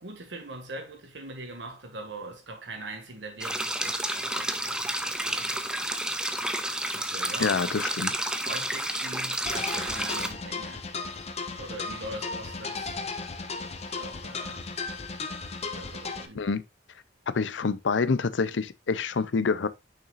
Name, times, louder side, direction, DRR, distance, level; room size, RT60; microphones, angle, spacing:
voice 1, 0.0-6.2 6.9-7.6 8.4-10.8 11.5-13.0 13.9-14.6 15.8-16.4, right 2 dB, 65° right, 1.9 m, -42 dB
sound 1, 3.4-10.3, right 1 dB, 5° right, 0.6 m, -30 dB
voice 2, 7.4-8.2 16.3-16.6 17.3-19.7, left 5 dB, 75° left, 0.5 m, -27 dB
sound 2, 9.5-16.3, left 4 dB, 35° left, 0.7 m, -35 dB
6.6 x 5.9 x 2.5 m
head